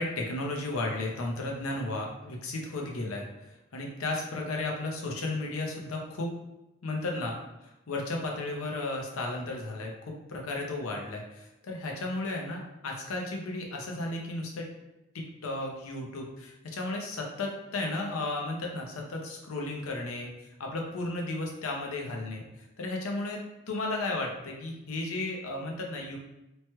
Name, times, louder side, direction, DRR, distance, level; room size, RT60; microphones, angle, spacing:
voice 1, 0.0-6.3 6.8-7.3 7.6-14.7 15.1-22.4 22.8-23.4 23.7-26.2, left 2 dB, 80° left, 0 dB, 0.6 m, -34 dB
3.0 x 2.2 x 2.9 m, 0.95 s
head